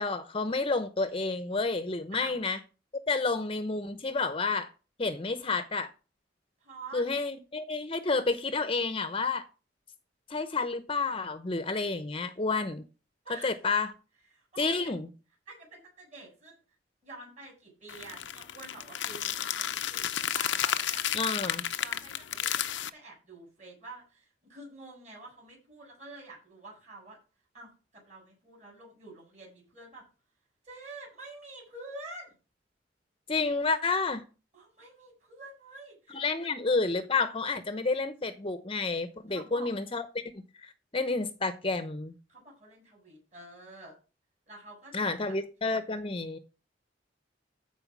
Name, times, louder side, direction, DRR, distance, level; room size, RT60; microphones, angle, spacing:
voice 1, 0.0-2.6 3.1-4.7 5.0-5.9 6.9-9.4 10.3-12.8 13.4-13.9 14.6-15.1 21.1-21.6 33.3-34.2 36.1-40.0 40.6-42.1 44.9-46.4, left 3 dB, 30° left, 0.8 m, -30 dB
voice 2, 6.6-7.0 13.2-13.6 14.3-14.9 15.5-16.6 17.0-21.1 21.7-27.2 27.5-30.0 30.6-32.4 34.5-36.5 39.3-39.7 42.3-43.9 44.5-45.3, right 2 dB, 40° right, 7.8 m, -48 dB
sound 1, 17.9-22.9, left 10 dB, 90° left, 0.7 m, -32 dB
14.0 x 4.8 x 6.1 m
head